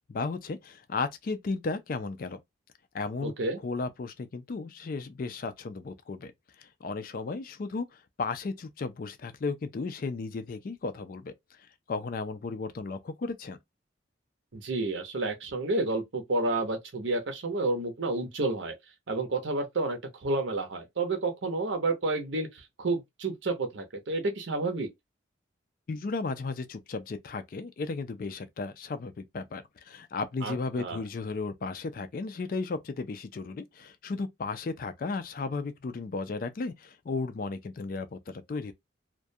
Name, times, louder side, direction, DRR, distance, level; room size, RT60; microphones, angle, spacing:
voice 1, 0.1-2.4 2.9-6.3 6.6-11.3 11.9-13.6 25.9-38.7, left 3 dB, 45° left, 0.3 m, -34 dB
voice 2, 3.2-3.6 14.5-18.7 19.1-24.9 30.4-31.0, right 2 dB, 75° right, 0.7 m, -30 dB
2.3 x 2.2 x 2.6 m
head